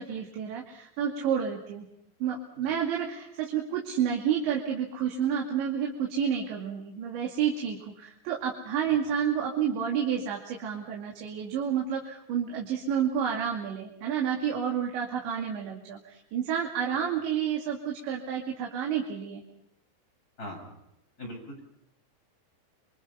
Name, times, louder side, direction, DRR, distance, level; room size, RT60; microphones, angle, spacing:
voice 1, 0.0-1.9 2.2-19.4, right 8 dB, 90° right, 0 dB, 4.7 m, -30 dB
voice 2, 20.4-20.7 21.2-21.6, equal, 20° left, 0 dB, 8.3 m, -40 dB
28.5 x 24.5 x 5.8 m, 0.78 s
omnidirectional pair, 5.0 m